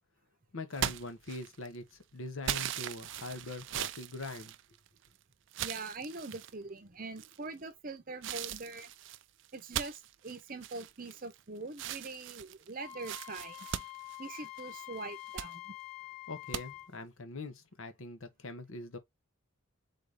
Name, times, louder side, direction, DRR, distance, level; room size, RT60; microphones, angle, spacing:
voice 1, 0.5-4.5 16.3-19.0, left 2 dB, 70° left, 0.9 m, -43 dB
sound 1, 0.7-1.8 2.4-5.1 5.5-6.5 7.2-7.6 8.2-11.4 11.7-14.7 15.1-15.5 16.5-16.6, right 11 dB, 55° right, 0.3 m, -39 dB
voice 2, 5.6-8.9 9.5-13.7 14.2-15.7, right 3 dB, 40° right, 0.7 m, -43 dB
Wind instrument woodwind instrument, 12.8-16.9, left 15 dB, 30° left, 0.6 m, -46 dB
3.9 x 2.7 x 4.8 m
head